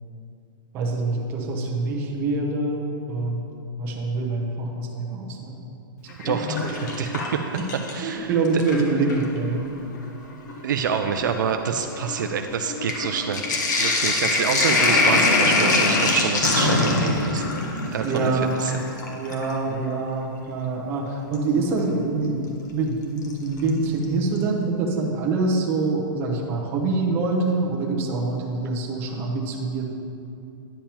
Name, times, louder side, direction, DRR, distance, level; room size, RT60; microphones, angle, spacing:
voice 1, 0.7-3.5 3.8-5.6 6.2-6.3 6.6-6.7 7.5-7.6 8.0-9.6 18.0-18.7 19.1-29.9, right 3 dB, 20° right, -1 dB, 0.6 m, -25 dB
Sink (filling or washing), 6.1-8.1 8.5-9.3 10.1-10.2 10.5-19.6 21.3-21.4 23.2-23.7 24.0-24.1 24.4-24.5, left 2 dB, 50° left, 1.0 m, -23 dB
voice 2, 6.1-7.4 7.9-8.3 10.6-13.4 13.8-17.4 17.9-18.3 18.6-18.7, right 7 dB, 60° right, 6 dB, 0.4 m, -27 dB
9.9 x 7.1 x 2.9 m, 2.7 s
hypercardioid pair, 175°, 12 cm